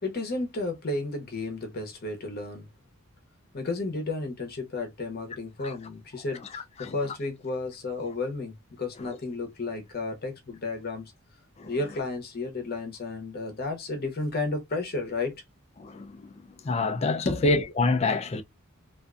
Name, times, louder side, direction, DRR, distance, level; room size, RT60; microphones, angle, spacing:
voice 1, 0.0-2.7 3.5-11.1 11.7-15.3 17.2-17.5, left 3 dB, 45° left, 0.8 m, -32 dB
voice 2, 16.6-18.4, left 3 dB, 30° left, 0.3 m, -26 dB
2.5 x 2.3 x 2.3 m
head